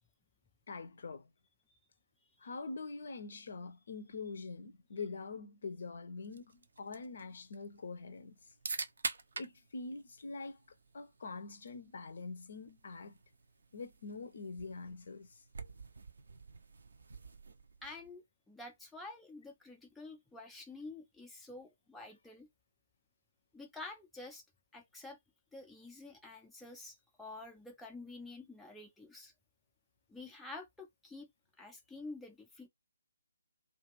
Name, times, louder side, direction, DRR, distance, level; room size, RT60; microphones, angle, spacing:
voice 1, 0.7-1.3 2.4-8.4 9.4-10.6 10.9-13.2 13.7-15.4, left 4 dB, 55° left, 0.5 m, -44 dB
sound 1, 6.2-18.2, right 4 dB, 60° right, 0.5 m, -48 dB
voice 2, 17.8-22.5 23.5-24.4 24.7-25.2 25.5-29.3 30.1-31.3 31.6-32.7, left 2 dB, 5° left, 0.4 m, -49 dB
2.4 x 2.3 x 3.0 m
figure-of-eight pair, 145°, 0 cm